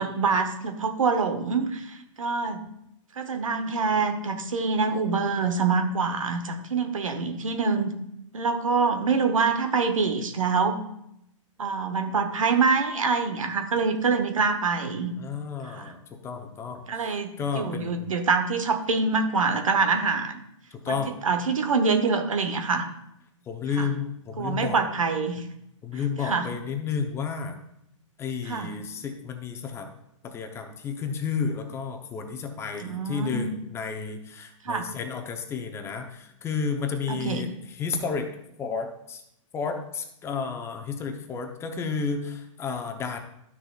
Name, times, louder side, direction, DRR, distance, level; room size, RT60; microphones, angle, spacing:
voice 1, 0.0-2.6 3.2-7.9 8.3-10.8 11.6-15.1 15.7-15.9 16.9-20.3 20.9-21.0 21.2-22.9 23.8-23.9 24.4-25.4 26.2-26.5 28.5-28.7 32.8-33.5 34.6-34.9 37.1-37.5, right 4 dB, 85° right, 7 dB, 1.1 m, -25 dB
voice 2, 15.2-18.2 20.7-21.1 23.5-24.8 25.8-27.6 28.2-29.9 30.2-39.2 39.5-43.2, left 5 dB, 15° left, 5 dB, 0.7 m, -32 dB
12.0 x 6.4 x 2.4 m, 0.78 s
hypercardioid pair, 140°, 17 cm